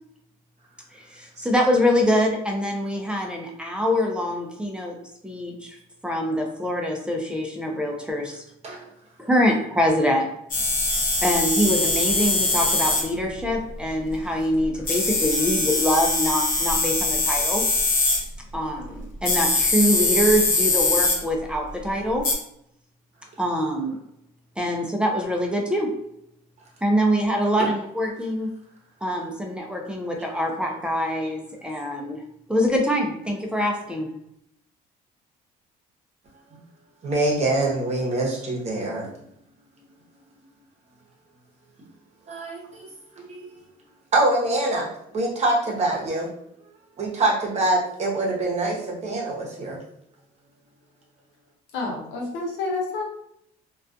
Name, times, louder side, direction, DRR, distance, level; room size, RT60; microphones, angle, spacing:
voice 1, 0.9-5.0 5.2-5.8 6.0-8.4 9.2-10.3 11.2-17.7 18.5-22.3 23.4-24.0 24.6-25.9 26.8-28.6 29.0-32.2 32.5-34.1, equal, 5° right, 0 dB, 0.4 m, -24 dB
sound 1, 10.5-13.1 13.4-13.5 14.9-18.2 19.2-21.2 22.2-22.3, left 2 dB, 50° left, 0.8 m, -22 dB
voice 2, 37.0-39.1 42.3-42.9 43.2-43.6 44.1-44.9 45.1-46.3 47.0-49.8, right 2 dB, 40° right, -2 dB, 0.8 m, -24 dB
voice 3, 51.7-53.0, left 3 dB, 85° left, -1 dB, 0.7 m, -29 dB
2.3 x 2.3 x 2.5 m, 0.73 s
cardioid pair, 110°, 17 cm